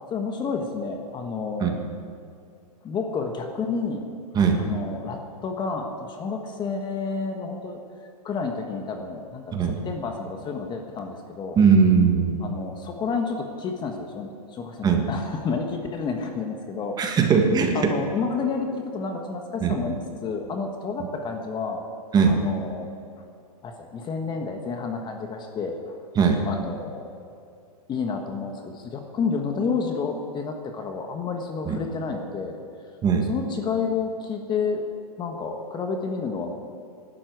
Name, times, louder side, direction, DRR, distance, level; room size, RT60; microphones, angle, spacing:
voice 1, 0.1-1.8 2.8-4.1 4.6-7.8 8.2-11.6 12.4-17.2 17.7-21.8 22.3-22.9 23.6-26.0 26.4-27.1 27.9-32.6 33.2-34.8 35.2-36.5, left 5 dB, 20° left, 4 dB, 1.4 m, -30 dB
voice 2, 4.3-4.7 9.5-9.8 11.6-12.4 14.8-15.1 17.0-17.9 19.6-19.8 22.1-22.4 26.1-26.4 31.6-31.8 33.0-33.3, right 5 dB, 20° right, 3 dB, 1.6 m, -19 dB
19.0 x 12.0 x 4.8 m, 2.5 s
hypercardioid pair, 135°, 20 cm